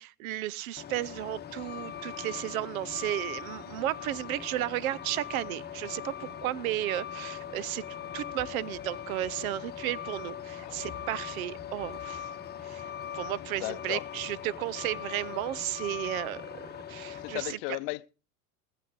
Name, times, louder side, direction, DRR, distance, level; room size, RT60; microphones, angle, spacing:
voice 1, 0.0-12.3 12.6-17.8, right 14 dB, 70° right, 0.7 m, -34 dB
Truck, 0.8-17.5, left 9 dB, 20° left, 1.2 m, -41 dB
voice 2, 13.6-14.0 17.2-18.1, left 23 dB, 55° left, 0.7 m, -35 dB
20.0 x 7.8 x 4.6 m
hypercardioid pair, 105°, 45 cm